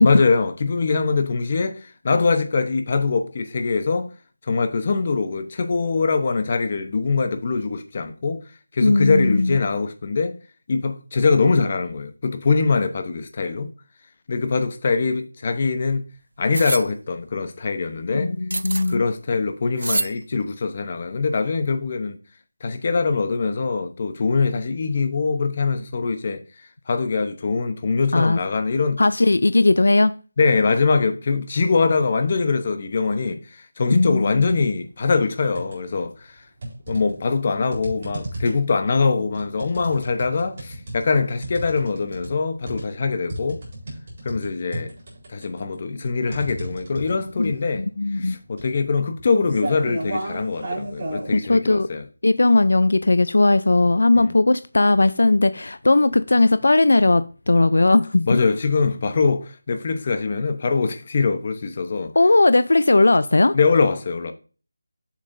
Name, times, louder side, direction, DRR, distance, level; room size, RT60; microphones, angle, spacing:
voice 1, 0.0-4.1 4.5-8.4 8.7-10.4 10.7-13.7 14.3-16.0 16.4-18.3 18.9-22.2 22.6-26.4 26.9-29.0 30.4-36.3 36.9-43.6 44.2-44.9 45.3-47.8 48.2-52.0 54.1-54.3 58.3-62.1 63.5-64.3, left 4 dB, 30° left, 0.8 m, -23 dB
voice 2, 8.8-9.6 18.1-19.0 28.1-28.4 29.0-30.1 33.9-34.5 47.4-47.5 47.8-48.4 51.3-51.9 52.2-58.3 62.2-63.5, left 2 dB, 70° left, 0.5 m, -18 dB
sound 1, 16.5-16.9 18.5-19.0 19.8-20.1, right 2 dB, 75° right, 0.3 m, -26 dB
sound 2, 34.3-34.7 35.1-36.0 36.6-51.3, right 1 dB, 30° right, 3.9 m, -34 dB
7.4 x 7.2 x 2.7 m
figure-of-eight pair, 175°, 0 cm